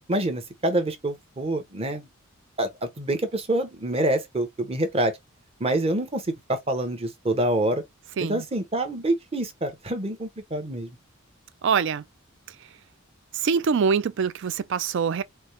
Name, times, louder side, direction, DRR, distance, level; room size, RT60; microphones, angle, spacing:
voice 1, 0.1-2.1 2.6-2.7 3.0-5.1 5.6-6.2 6.5-7.8 8.2-10.9, right 1 dB, 30° right, 0.8 m, -26 dB
voice 2, 11.6-12.0 13.3-15.2, right 6 dB, 60° right, 0.4 m, -24 dB
4.3 x 2.2 x 3.2 m
head